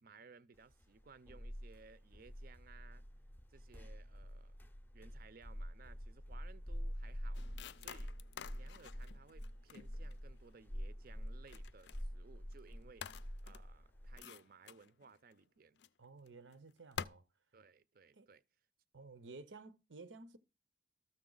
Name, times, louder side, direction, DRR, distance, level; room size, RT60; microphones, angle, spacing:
voice 1, 0.0-3.0 3.5-4.6 4.9-7.4 7.8-8.1 8.5-13.1 13.4-15.8 17.5-18.4, right 4 dB, 50° right, 0.5 m, -60 dB
sound 1, 0.7-14.2, equal, 10° left, 0.6 m, -47 dB
sound 2, 7.3-10.6 11.2-12.0 12.5-12.7 13.0-15.3 15.8-15.9 16.3-16.5 16.9-17.1, left 7 dB, 65° left, 0.4 m, -50 dB
voice 2, 16.0-17.2 18.1-18.3 18.9-20.4, right 3 dB, 85° right, 0.8 m, -54 dB
13.5 x 6.6 x 3.9 m
head